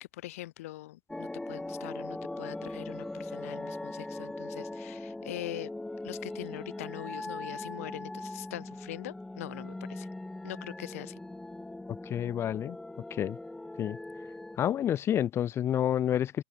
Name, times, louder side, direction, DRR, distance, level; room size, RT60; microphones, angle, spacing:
voice 1, 0.1-5.7 6.0-10.1 10.4-11.2, left 16 dB, 70° left, 1.4 m, -42 dB
sound 1, 1.1-14.6, left 2 dB, 5° left, 3.0 m, -40 dB
voice 2, 11.9-12.8 13.1-13.4 13.8-14.0 14.6-16.4, left 10 dB, 30° left, 1.4 m, -29 dB
hypercardioid pair, 105°, 8 cm